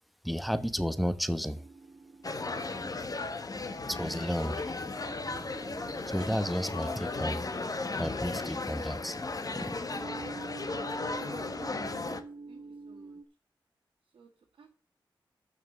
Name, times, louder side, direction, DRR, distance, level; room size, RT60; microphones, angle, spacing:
voice 1, 0.2-1.6 3.9-4.6 6.1-7.4 8.0-9.2 9.5-9.8, equal, ahead, 12 dB, 1.0 m, -32 dB
sound 1, 1.6-13.2, right 3 dB, 55° right, 1.2 m, -48 dB
sound 2, 2.2-12.2, left 3 dB, 45° left, 1.2 m, -36 dB
voice 2, 12.5-13.2 14.1-14.3 14.6-14.7, right 5 dB, 90° right, -6 dB, 2.0 m, -59 dB
6.7 x 6.2 x 7.4 m, 0.38 s
cardioid pair, 45°, 9 cm